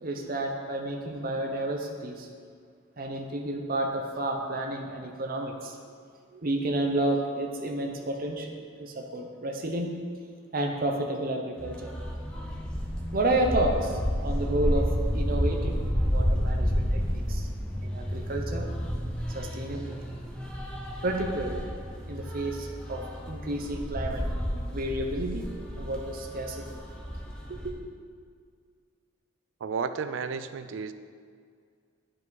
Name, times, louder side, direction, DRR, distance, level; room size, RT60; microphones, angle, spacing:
voice 1, 0.0-2.3 3.0-5.8 6.3-10.0 10.5-11.9 13.1-15.8 16.1-17.5 17.8-18.7 19.3-19.9 21.0-21.6 22.1-24.2 24.7-25.5 25.8-26.7 27.5-27.7, right 1 dB, 45° right, 2 dB, 0.7 m, -31 dB
sound 1, 11.6-27.7, equal, 5° left, 0.7 m, -31 dB
voice 2, 29.6-30.9, right 5 dB, 70° right, 11 dB, 0.4 m, -32 dB
9.7 x 4.8 x 3.9 m, 2.1 s
head